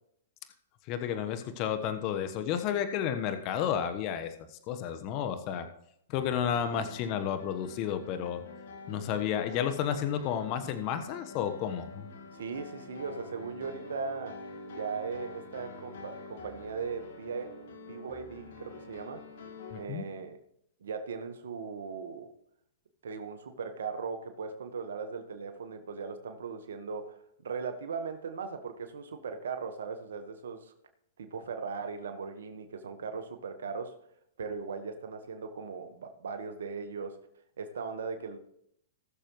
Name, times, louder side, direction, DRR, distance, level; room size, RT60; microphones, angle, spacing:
voice 1, 0.9-5.7 6.1-8.4 8.9-12.1 19.7-20.0, left 9 dB, 40° left, 9 dB, 1.1 m, -32 dB
sound 1, 6.1-19.8, left 3 dB, 70° left, 2.2 m, -47 dB
voice 2, 12.3-14.4 14.6-17.6 17.9-19.2 19.7-20.4 20.8-22.3 23.0-30.7 31.2-33.9 34.4-37.2 37.6-38.4, right 5 dB, 75° right, 7 dB, 1.4 m, -38 dB
19.0 x 6.8 x 3.2 m, 0.75 s
hypercardioid pair, 130°, 0 cm